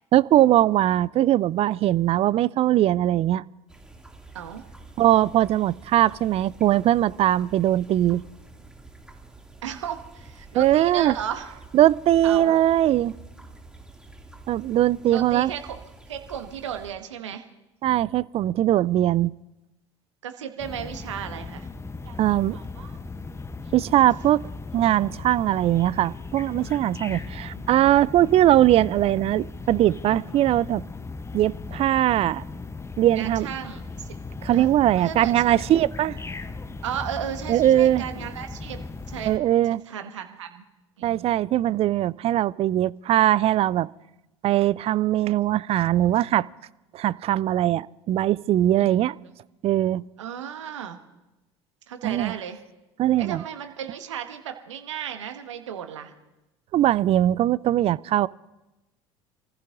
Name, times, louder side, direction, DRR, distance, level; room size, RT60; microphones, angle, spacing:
voice 1, 0.1-3.4 5.0-8.2 10.5-11.1 11.7-13.2 14.5-15.5 17.8-19.3 22.2-22.6 23.7-24.4 24.7-30.8 31.3-32.4 33.0-33.5 34.4-36.2 37.5-38.0 39.3-39.8 41.0-43.9 44.4-46.5 46.9-49.2 49.6-50.0 52.0-52.3 53.0-53.4 56.7-58.3, right 13 dB, 40° right, 21 dB, 0.4 m, -21 dB
sound 1, 3.7-16.9, right 2 dB, 5° right, 2.4 m, -47 dB
voice 2, 9.6-11.5 12.2-12.7 15.1-15.8 16.1-17.4 20.2-21.7 22.0-22.2 22.5-23.0 23.6-23.7 27.1-27.6 33.1-34.2 34.5-35.6 36.8-38.8 39.1-39.3 39.6-40.6 41.0-41.3 48.8-48.9 49.2-49.3 50.2-51.0 51.9-52.6 53.2-56.1, right 9 dB, 80° right, 6 dB, 1.4 m, -35 dB
sound 2, 20.6-39.4, left 3 dB, 15° left, 0.8 m, -37 dB
29.0 x 15.0 x 2.6 m, 1.0 s
hypercardioid pair, 65°, 15 cm